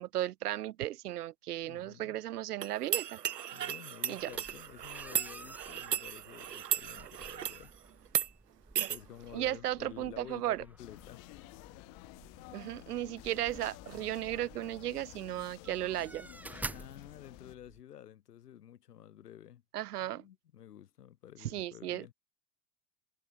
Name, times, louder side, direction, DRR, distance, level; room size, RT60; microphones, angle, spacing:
voice 1, 0.0-3.2 4.1-4.3 9.3-10.6 12.5-16.3 19.7-20.2 21.5-22.1, right 13 dB, 75° right, 1.2 m, -35 dB
voice 2, 1.7-2.2 3.5-7.7 8.9-11.2 16.7-19.6 20.0-22.1, left 11 dB, 75° left, 2.4 m, -51 dB
sound 1, 2.6-7.6 8.1-8.3 8.8-9.0, right 10 dB, 90° right, 0.8 m, -35 dB
sound 2, 4.2-17.8, right 2 dB, 5° right, 0.6 m, -51 dB
sound 3, 10.8-17.6, left 36 dB, 55° left, 5.6 m, -52 dB
hypercardioid pair, 95°, 47 cm